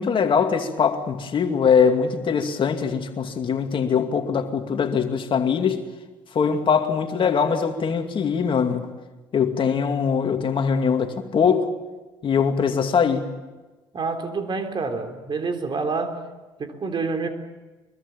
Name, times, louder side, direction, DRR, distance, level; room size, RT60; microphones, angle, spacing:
voice 1, 0.0-5.8 6.3-8.9 9.3-11.7 12.2-13.3, left 6 dB, 45° left, 2.5 m, -22 dB
voice 2, 13.9-16.3 16.6-17.3, right 4 dB, 40° right, 3.7 m, -27 dB
23.5 x 22.5 x 7.3 m
hypercardioid pair, 60°, 12 cm